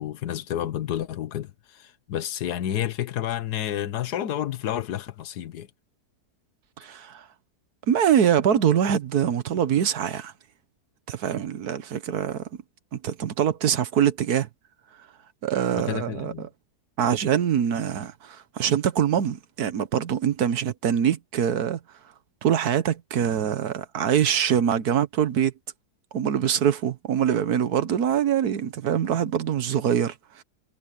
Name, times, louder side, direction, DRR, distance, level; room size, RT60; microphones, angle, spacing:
voice 1, 0.0-5.7 15.7-16.5, left 11 dB, 80° left, 1.5 m, -30 dB
voice 2, 6.8-7.3 7.9-10.3 11.1-12.5 12.9-14.5 15.4-16.5 17.0-21.8 22.4-25.5 26.1-30.4, right 9 dB, 70° right, 1.5 m, -24 dB
omnidirectional pair, 1.7 m